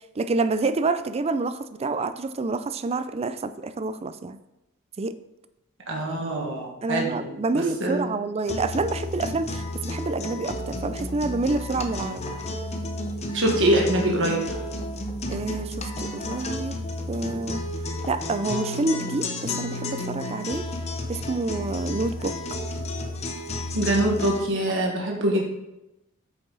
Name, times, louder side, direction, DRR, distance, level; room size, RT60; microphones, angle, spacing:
voice 1, 0.2-4.4 5.0-5.1 6.8-12.2 15.3-16.8 17.1-17.6 18.1-20.6 21.1-22.4 24.7-24.8, right 3 dB, 30° right, 13 dB, 0.4 m, -28 dB
voice 2, 5.9-8.1 13.3-14.4 23.7-25.4, right 1 dB, 60° right, -1 dB, 1.6 m, -24 dB
sound 1, 8.5-24.5, left 1 dB, 30° left, 0.8 m, -32 dB
8.4 x 6.8 x 4.0 m, 0.93 s
head